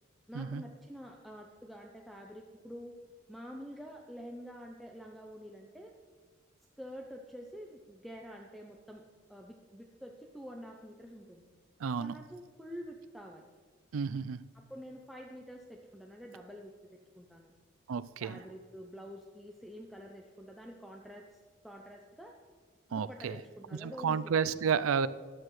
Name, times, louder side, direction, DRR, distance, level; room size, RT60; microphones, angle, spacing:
voice 1, 0.3-3.0 3.3-6.0 6.8-9.0 9.3-11.5 12.0-13.5 14.5-17.5 18.2-22.4 22.9-24.3, equal, ahead, 0 dB, 0.6 m, -47 dB
voice 2, 11.8-12.1 13.9-14.4 17.9-18.4 22.9-23.4 23.8-25.1, right 6 dB, 90° right, 16 dB, 0.4 m, -31 dB
14.0 x 11.0 x 3.2 m, 1.6 s
head